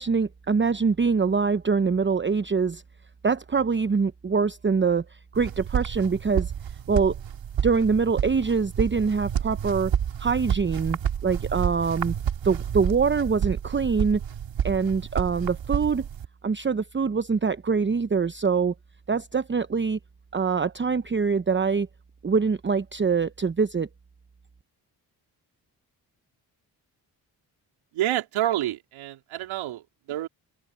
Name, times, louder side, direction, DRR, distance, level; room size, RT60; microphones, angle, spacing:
voice 1, 0.0-2.8 3.2-6.5 6.9-7.1 7.6-9.9 10.2-12.1 12.4-14.2 14.6-16.1 16.4-18.7 19.1-20.0 20.3-21.9 22.2-23.9, right 5 dB, 25° right, 0.9 m, -24 dB
sound 1, 5.3-16.3, right 9 dB, 65° right, 3.2 m, -30 dB
voice 2, 27.9-29.8 30.1-30.3, right 13 dB, 85° right, 4.3 m, -28 dB
open air
supercardioid pair, 45°, 47 cm